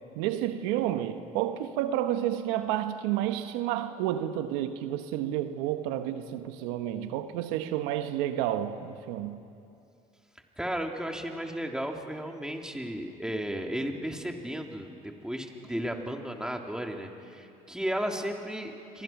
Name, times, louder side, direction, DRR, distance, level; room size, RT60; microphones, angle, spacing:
voice 1, 0.1-9.4, right 12 dB, 85° right, 9 dB, 1.1 m, -30 dB
voice 2, 10.6-19.0, equal, 5° right, 2 dB, 3.4 m, -34 dB
29.0 x 24.5 x 6.0 m, 2.5 s
supercardioid pair, 70°, 18 cm